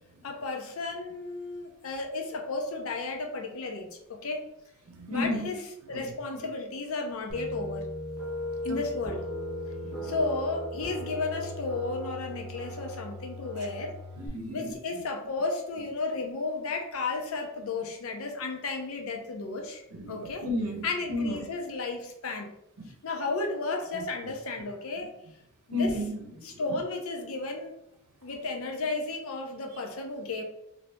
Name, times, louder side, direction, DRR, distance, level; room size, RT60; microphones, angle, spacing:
voice 1, 0.2-4.5 5.1-7.9 8.6-9.3 10.0-14.0 14.5-19.8 20.1-20.4 20.8-22.5 23.0-25.1 25.7-26.0 26.4-27.8 28.2-30.4, left 3 dB, 65° left, 3 dB, 0.6 m, -33 dB
voice 2, 4.9-5.5 5.9-6.0 8.7-8.8 9.8-10.1 14.2-14.7 19.9-21.5 22.8-22.9 23.9-24.0 25.0-25.1 25.7-26.6, left 1 dB, 75° right, 3 dB, 0.7 m, -33 dB
sound 1, 7.3-14.3, equal, 10° right, 0.8 m, -37 dB
2.7 x 2.7 x 3.3 m, 0.80 s
head